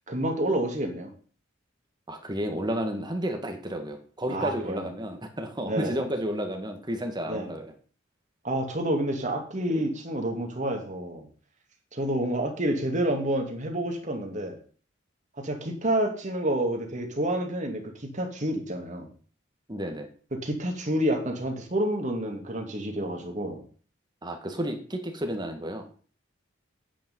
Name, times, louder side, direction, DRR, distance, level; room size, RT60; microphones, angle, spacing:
voice 1, 0.1-1.1 4.3-4.9 5.7-6.0 7.3-7.5 8.4-11.3 11.9-14.6 15.4-19.1 20.3-23.6, right 1 dB, 40° right, 2 dB, 2.5 m, -29 dB
voice 2, 2.1-7.7 19.7-20.1 24.2-25.9, equal, 20° right, 5 dB, 1.9 m, -32 dB
9.2 x 9.0 x 5.5 m, 0.42 s
head